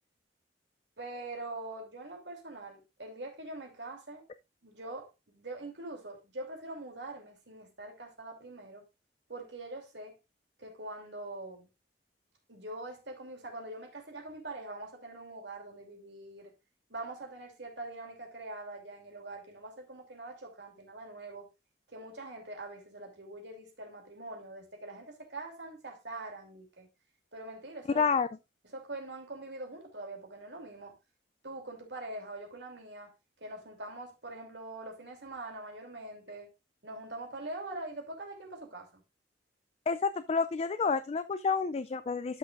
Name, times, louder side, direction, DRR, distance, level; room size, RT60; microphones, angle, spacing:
voice 1, 1.0-4.2 4.6-8.8 9.3-10.1 10.6-11.7 12.5-16.5 16.9-21.5 21.9-26.9 27.3-28.0 28.6-31.0 31.4-33.1 33.4-36.5 36.8-39.0, right 2 dB, 75° right, 3.0 m, -43 dB
voice 2, 28.0-28.3 39.9-42.4, left 5 dB, 35° left, 0.3 m, -29 dB
12.5 x 6.1 x 2.5 m
head